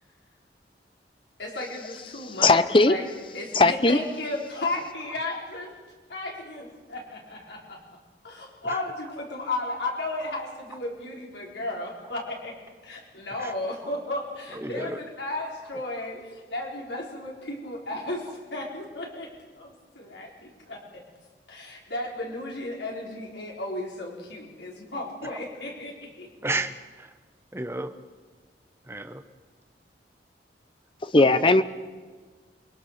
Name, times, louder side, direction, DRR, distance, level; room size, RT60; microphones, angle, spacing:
voice 1, 1.4-3.1 3.3-5.7 6.1-7.8 8.2-12.5 12.8-19.3 19.6-21.0 21.5-26.3, left 2 dB, 80° left, -2 dB, 4.4 m, -34 dB
voice 2, 2.4-2.9 3.5-4.0 31.0-31.6, left 2 dB, 30° left, 12 dB, 0.8 m, -18 dB
voice 3, 14.5-15.0 25.3-25.4 26.4-27.1 27.5-27.9 28.9-29.2 31.2-31.5, right 2 dB, 15° right, 8 dB, 1.0 m, -32 dB
27.5 x 20.5 x 6.6 m, 1.5 s
head